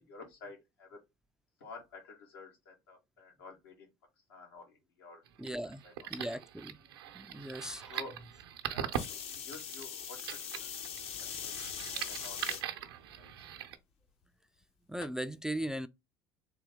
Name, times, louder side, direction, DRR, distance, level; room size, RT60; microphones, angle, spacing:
voice 1, 0.1-1.0 1.6-3.9 4.3-5.2 5.6-5.9 7.3-8.2 8.7-10.7 11.0-12.6 13.2-13.3, left 3 dB, 85° left, 1.7 m, -51 dB
sound 1, 5.3-13.8, right 10 dB, 80° right, 0.6 m, -41 dB
voice 2, 5.4-5.8 6.1-6.8 7.1-8.0 14.9-15.9, right 1 dB, 5° right, 0.3 m, -38 dB
sound 2, 8.9-12.6 13.3-13.7 15.0-15.1, left 8 dB, 55° left, 0.8 m, -41 dB
3.7 x 2.7 x 3.5 m
hypercardioid pair, 75°, 12 cm